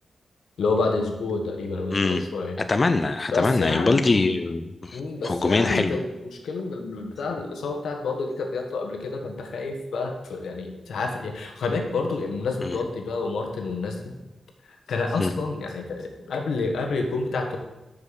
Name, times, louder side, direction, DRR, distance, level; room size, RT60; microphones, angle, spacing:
voice 1, 0.6-2.6 3.3-4.3 4.9-6.0 6.4-14.1 14.9-17.6, left 3 dB, 90° left, 3 dB, 1.2 m, -29 dB
voice 2, 1.9-2.2 2.7-6.0 12.6-12.8 15.2-15.3, left 3 dB, 35° left, 8 dB, 0.4 m, -23 dB
6.4 x 5.5 x 6.5 m, 1.0 s
wide cardioid pair, 105°, 0 cm